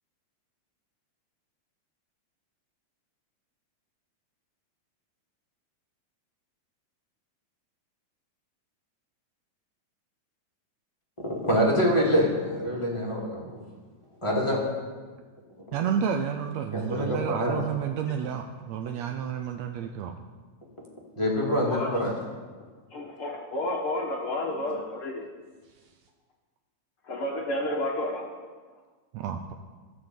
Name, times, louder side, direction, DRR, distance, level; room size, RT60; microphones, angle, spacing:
voice 1, 11.4-13.6 14.2-14.6 15.8-15.9 16.7-17.5 21.2-22.1, equal, 10° left, -3 dB, 2.1 m, -25 dB
voice 2, 15.7-20.1 29.1-29.5, right 8 dB, 80° right, 6 dB, 1.6 m, -30 dB
voice 3, 21.7-22.0 22.9-25.2 27.0-28.2, left 1 dB, 55° left, -1 dB, 1.8 m, -31 dB
13.5 x 6.5 x 7.4 m, 1.4 s
omnidirectional pair, 3.4 m